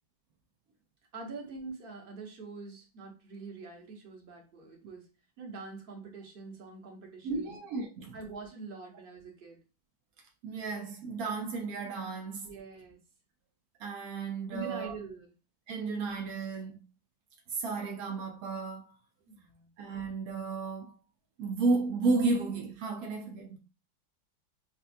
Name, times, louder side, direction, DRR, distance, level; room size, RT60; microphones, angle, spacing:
voice 1, 1.1-5.1 5.4-7.6 8.1-9.6 12.4-13.0 14.5-15.3 19.3-19.7, right 3 dB, 35° right, 0.9 m, -44 dB
voice 2, 7.2-8.2 10.4-12.5 13.8-14.9 15.7-16.8 17.5-18.9 19.8-20.9 21.4-23.6, right 3 dB, 90° right, 0.7 m, -33 dB
5.7 x 2.2 x 2.6 m
omnidirectional pair, 2.2 m